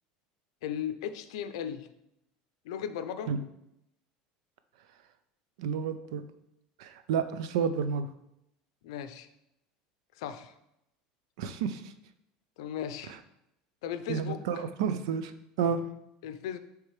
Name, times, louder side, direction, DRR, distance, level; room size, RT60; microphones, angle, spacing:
voice 1, 0.6-1.9 2.6-3.3 8.8-9.3 10.2-10.5 12.6-13.2 13.8-14.4 15.6-15.7 16.2-16.6, left 9 dB, 90° left, 10 dB, 0.5 m, -36 dB
voice 2, 5.6-6.2 6.8-8.1 11.4-11.9 14.1-15.3 15.6-15.8, right 7 dB, 85° right, 10 dB, 0.5 m, -30 dB
9.6 x 3.5 x 3.1 m, 0.83 s
cardioid pair, 145°, 3 cm